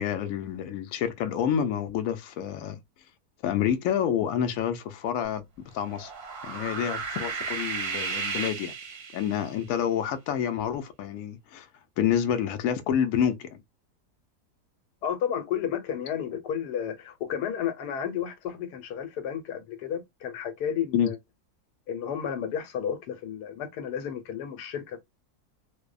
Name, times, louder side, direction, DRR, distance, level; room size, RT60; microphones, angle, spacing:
voice 1, 0.0-2.8 3.4-5.4 5.7-6.1 6.4-8.7 9.1-11.7 12.0-13.6 20.9-21.1, left 9 dB, 70° left, 0.9 m, -28 dB
sound 1, 5.8-9.6, right 5 dB, 50° right, 0.7 m, -34 dB
voice 2, 15.0-21.2 21.9-25.0, left 8 dB, 85° left, 1.2 m, -32 dB
2.6 x 2.1 x 2.2 m
omnidirectional pair, 1.7 m